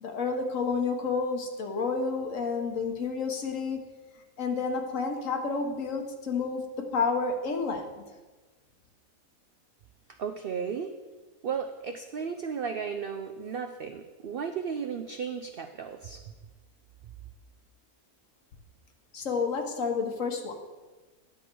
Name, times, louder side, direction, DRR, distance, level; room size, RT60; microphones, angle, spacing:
voice 1, 0.0-3.8 4.4-8.0 19.1-20.5, left 4 dB, 60° left, 4 dB, 1.4 m, -30 dB
voice 2, 10.2-10.9 11.4-16.2, right 6 dB, 80° right, 6 dB, 0.5 m, -34 dB
10.5 x 7.9 x 4.5 m, 1.3 s
omnidirectional pair, 1.6 m